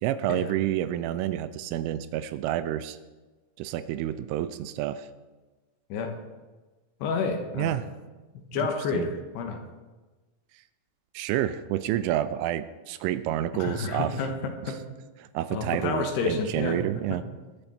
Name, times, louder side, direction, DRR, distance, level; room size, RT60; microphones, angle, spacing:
voice 1, 0.0-3.0 3.6-5.1 7.6-7.9 8.9-9.1 11.1-14.1 15.3-17.2, right 12 dB, 85° right, 13 dB, 2.9 m, -29 dB
voice 2, 7.0-7.8 8.5-9.6 13.5-14.8 15.5-16.8 17.1-17.2, left 5 dB, 70° left, 4 dB, 2.7 m, -30 dB
22.0 x 8.8 x 4.3 m, 1.2 s
omnidirectional pair, 6.0 m